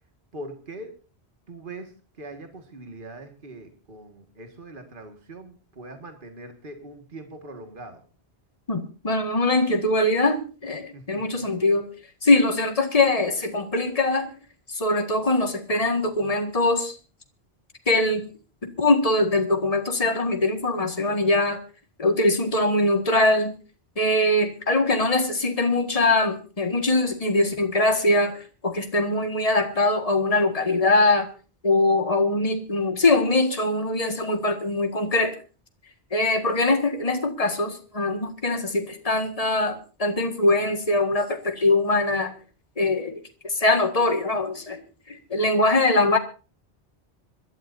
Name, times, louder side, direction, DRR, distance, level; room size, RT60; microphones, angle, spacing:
voice 1, 0.3-1.0 1.5-8.0 10.9-11.4, right 2 dB, 50° right, 6 dB, 2.1 m, -42 dB
voice 2, 8.7-11.9 12.2-14.3 14.7-17.0 17.9-18.3 18.6-21.6 22.0-23.5 24.0-31.3 31.6-35.4 36.1-42.3 42.8-43.2 43.4-44.8 45.1-46.2, left 2 dB, 35° left, 6 dB, 1.9 m, -22 dB
26.0 x 12.5 x 2.7 m, 0.35 s
omnidirectional pair, 1.1 m